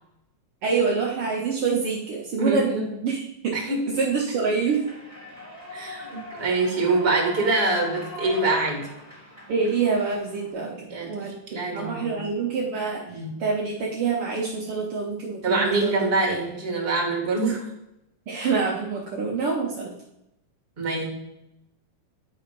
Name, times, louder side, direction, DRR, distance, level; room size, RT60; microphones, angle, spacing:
voice 1, 0.6-3.6 3.9-4.8 9.5-15.9 18.3-19.9, right 5 dB, 75° right, -2 dB, 1.3 m, -26 dB
voice 2, 2.4-2.9 3.5-3.9 5.7-8.9 10.9-11.1 11.5-12.2 13.1-13.4 15.4-17.6 20.8-21.1, right 3 dB, 25° right, -1 dB, 1.6 m, -25 dB
Human voice / Clapping / Cheering, 4.5-10.5, left 1 dB, 15° left, 2.1 m, -40 dB
9.6 x 3.8 x 5.2 m, 0.85 s
omnidirectional pair, 3.9 m